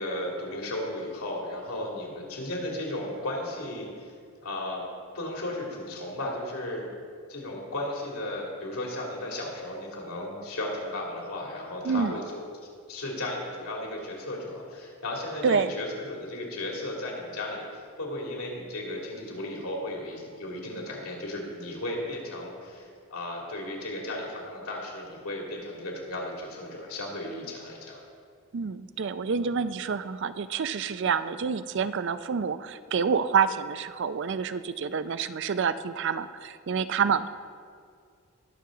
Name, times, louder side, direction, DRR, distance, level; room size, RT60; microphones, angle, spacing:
voice 1, 0.0-4.1 4.4-6.9 7.3-12.4 12.9-28.0, left 1 dB, 75° left, -2 dB, 2.6 m, -35 dB
voice 2, 11.8-12.2 15.4-15.7 28.5-37.3, right 6 dB, 55° right, 13 dB, 0.4 m, -27 dB
20.0 x 6.9 x 3.8 m, 2.2 s
head